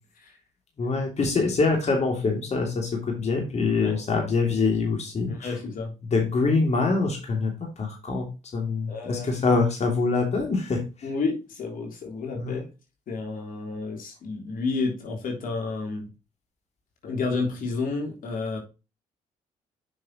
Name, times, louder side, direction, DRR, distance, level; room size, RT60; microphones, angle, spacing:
voice 1, 0.8-5.5 6.1-8.3 8.5-10.8 12.4-12.6, left 4 dB, 45° left, 1 dB, 3.0 m, -24 dB
voice 2, 5.3-5.9 8.9-9.5 11.0-12.6 13.1-16.1 17.0-18.6, left 4 dB, 65° left, 1 dB, 3.3 m, -30 dB
7.3 x 6.4 x 3.1 m, 0.29 s
supercardioid pair, 60°, 16 cm